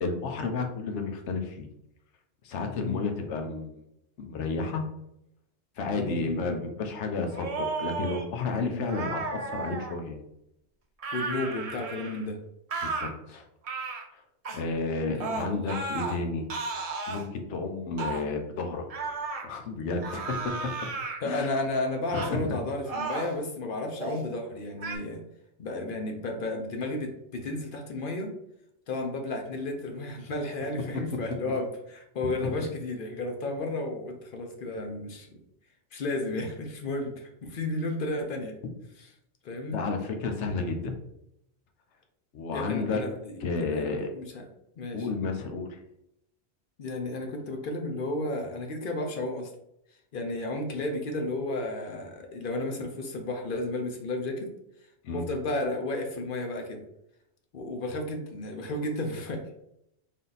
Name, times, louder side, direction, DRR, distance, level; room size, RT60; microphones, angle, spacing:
voice 1, 0.0-1.7 2.4-3.8 4.2-4.8 5.8-10.2 12.8-13.4 14.1-14.2 14.5-16.5 17.1-19.1 19.4-20.5 21.2-21.5 22.1-22.6 30.9-31.0 32.4-32.5 39.7-40.9 42.3-43.0 43.4-44.1 44.9-45.8 55.0-55.2, left 4 dB, 90° left, 5 dB, 1.0 m, -31 dB
voice 2, 5.9-6.6 8.6-9.0 11.1-12.4 15.1-15.7 21.2-25.2 25.6-28.3 28.9-35.4 35.9-38.6 39.4-39.8 42.5-43.9 44.1-44.5 44.8-45.1 46.8-49.5 50.1-54.5 55.1-56.8 57.5-59.5, left 2 dB, 55° left, 3 dB, 0.7 m, -33 dB
sound 1, 7.3-8.2 8.9-10.0 11.0-12.3 12.7-13.1 13.6-14.1 14.5-14.6 15.2-16.2 16.5-17.2 18.0-18.2 18.9-19.5 20.0-21.2 22.1-22.4 22.8-23.4 23.9-24.3 24.8-25.0, right 4 dB, 45° right, 0.5 m, -34 dB
3.6 x 2.7 x 3.9 m, 0.80 s
omnidirectional pair, 1.2 m